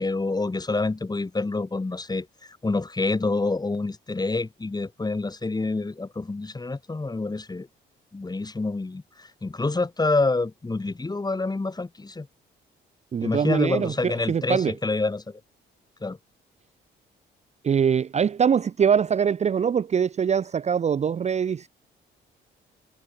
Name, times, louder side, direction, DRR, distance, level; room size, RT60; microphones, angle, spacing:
voice 1, 0.0-2.3 2.6-7.7 8.1-12.3 13.2-15.4 16.0-16.2, left 3 dB, 20° left, 3.4 m, -27 dB
voice 2, 13.1-14.7 17.6-21.7, right 7 dB, 35° right, 0.5 m, -23 dB
cardioid pair, 90°, 20 cm